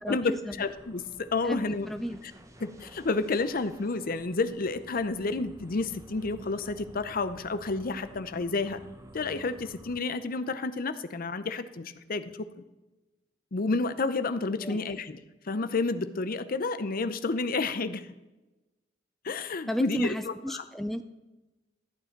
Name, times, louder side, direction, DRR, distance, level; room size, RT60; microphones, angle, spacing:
voice 1, 0.0-0.6 1.4-2.2 14.6-14.9 19.7-21.1, equal, ahead, 8 dB, 0.4 m, -33 dB
voice 2, 0.6-1.9 2.6-8.8 9.1-12.5 13.5-15.2 15.5-18.0 19.2-20.6, left 3 dB, 50° left, 11 dB, 0.7 m, -30 dB
sound 1, 0.6-10.0, right 1 dB, 15° right, 0.8 m, -51 dB
13.5 x 9.0 x 4.5 m, 1.1 s
head